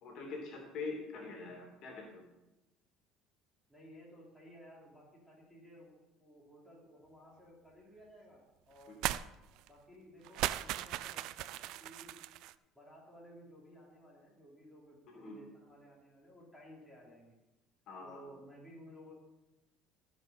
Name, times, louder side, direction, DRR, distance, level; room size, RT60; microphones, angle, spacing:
voice 1, 0.0-2.2 8.9-9.0 15.1-15.4 17.9-18.2, left 3 dB, 55° left, 0 dB, 2.8 m, -44 dB
voice 2, 3.7-9.0 9.7-12.2 12.7-17.4 18.0-19.1, equal, 5° left, -5 dB, 3.8 m, -56 dB
sound 1, 9.0-9.3 9.6-9.7 10.2-12.5, right 15 dB, 70° right, 0.4 m, -37 dB
15.0 x 5.4 x 5.4 m, 1.0 s
cardioid pair, 120°, 0 cm